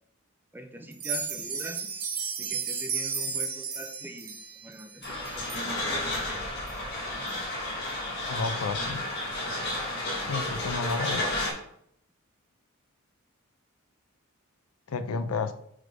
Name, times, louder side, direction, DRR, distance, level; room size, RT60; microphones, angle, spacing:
voice 1, 0.5-1.9 2.4-4.3 4.6-6.0 6.3-6.4, right 1 dB, 10° right, 6 dB, 0.6 m, -43 dB
sound 1, 0.9-5.7 6.1-6.2 6.7-6.8 7.3-7.4, right 6 dB, 80° right, 1.4 m, -33 dB
sound 2, 5.0-11.5, left 1 dB, 50° left, 2.8 m, -32 dB
voice 2, 8.3-9.0 10.3-11.2 14.9-15.5, left 4 dB, 85° left, 11 dB, 0.5 m, -31 dB
6.5 x 3.6 x 5.1 m, 0.71 s
head